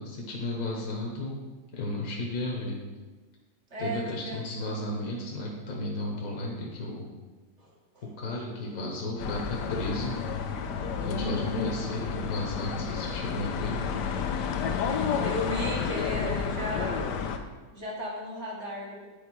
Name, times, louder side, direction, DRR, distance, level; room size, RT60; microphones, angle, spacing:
voice 1, 0.0-1.4 1.7-2.8 3.8-7.1 8.0-10.2 11.0-13.8, left 1 dB, 60° left, -1 dB, 1.5 m, -33 dB
voice 2, 0.8-1.2 3.7-5.0 7.6-8.0 11.1-11.8 14.9-17.1 17.7-19.1, left 1 dB, 45° right, -4 dB, 1.8 m, -36 dB
sound 1, 9.2-17.4, left 6 dB, 80° left, 1.3 m, -31 dB
8.6 x 4.6 x 4.7 m, 1.3 s
omnidirectional pair, 1.8 m